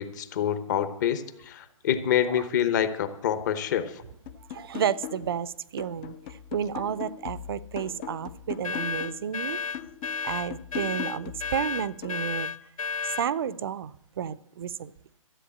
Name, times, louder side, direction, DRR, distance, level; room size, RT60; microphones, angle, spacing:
voice 1, 0.0-4.0, left 9 dB, 30° left, 11 dB, 0.9 m, -27 dB
sound 1, 4.3-5.4 5.8-9.3 9.7-12.3, left 9 dB, 15° left, 0.5 m, -40 dB
voice 2, 4.5-9.6 10.2-12.5 13.0-14.9, right 8 dB, 45° right, 18 dB, 0.6 m, -31 dB
sound 2, 8.6-13.3, left 6 dB, 75° left, 0.7 m, -32 dB
13.0 x 8.1 x 8.4 m, 0.73 s
hypercardioid pair, 160°, 18 cm